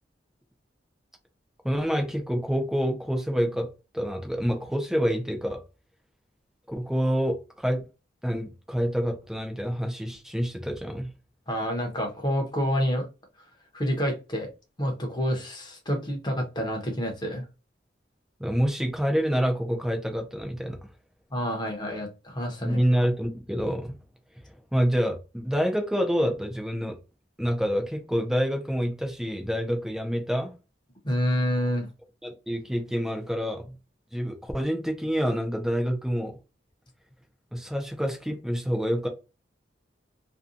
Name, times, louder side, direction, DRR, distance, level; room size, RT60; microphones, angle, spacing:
voice 1, 1.6-5.6 6.7-7.8 8.2-11.1 18.4-20.8 22.6-24.0 24.7-27.0 27.4-30.5 32.2-33.7 34.1-36.4 37.5-39.1, equal, 5° right, 0.4 m, -27 dB
voice 2, 11.5-13.1 13.7-14.5 14.8-17.4 21.3-22.8 31.0-31.9, equal, 25° left, 0.8 m, -28 dB
2.6 x 2.2 x 2.4 m
head